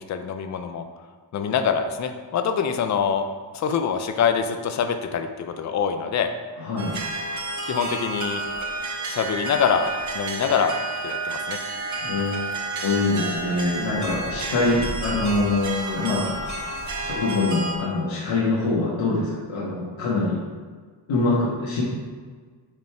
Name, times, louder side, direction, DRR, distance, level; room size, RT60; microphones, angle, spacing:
voice 1, 0.1-0.8 1.3-3.3 3.5-6.3 7.7-8.4 9.1-9.9 10.1-10.8 11.0-11.6, left 7 dB, 40° left, 7 dB, 0.5 m, -24 dB
voice 2, 6.6-7.0 12.0-16.4 17.0-20.4 21.1-21.8, left 3 dB, 90° left, -6 dB, 1.6 m, -24 dB
sound 1, 6.8-17.7, right 2 dB, 40° right, 0.7 m, -30 dB
5.4 x 5.2 x 4.4 m, 1.5 s
wide cardioid pair, 160°, 46 cm